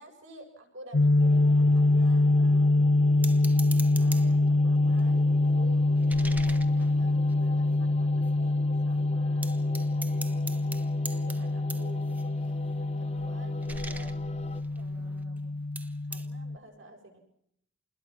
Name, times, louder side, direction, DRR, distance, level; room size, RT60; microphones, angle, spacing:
voice 1, 0.0-2.8 3.4-3.5 4.0-5.8 6.2-10.5 11.1-14.3 14.7-15.6 16.0-17.2, right 1 dB, 55° right, 2 dB, 7.5 m, -51 dB
sound 1, 0.9-16.6, left 2 dB, 80° left, 1.0 m, -25 dB
sound 2, 1.2-14.6, left 2 dB, 30° left, 1.5 m, -45 dB
sound 3, 3.2-4.5 4.9-7.8 8.2-8.3 8.6-8.9 9.4-15.4 15.8-16.3, right 2 dB, 5° right, 1.1 m, -44 dB
28.0 x 21.0 x 6.1 m, 0.73 s
head